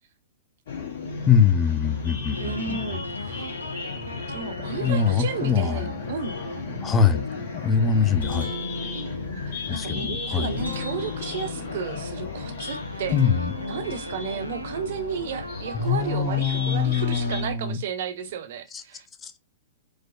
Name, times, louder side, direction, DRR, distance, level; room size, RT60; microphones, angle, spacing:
sound 1, 0.7-17.4, left 5 dB, 55° left, 0.9 m, -36 dB
voice 1, 1.3-2.8 4.8-5.8 6.8-7.2 7.5-8.5 9.7-10.6 13.1-13.5 15.7-17.8 18.7-18.8 19.2-19.3, left 7 dB, 20° left, 0.5 m, -23 dB
sound 2, 2.3-17.4, equal, 90° right, 0.5 m, -38 dB
voice 2, 2.4-3.5 4.3-6.4 9.4-13.2 13.6-19.1, right 6 dB, 55° right, 0.7 m, -33 dB
Guitar, 7.8-17.5, left 3 dB, 80° left, 1.5 m, -39 dB
4.8 x 2.0 x 2.4 m
figure-of-eight pair, 105°, 0 cm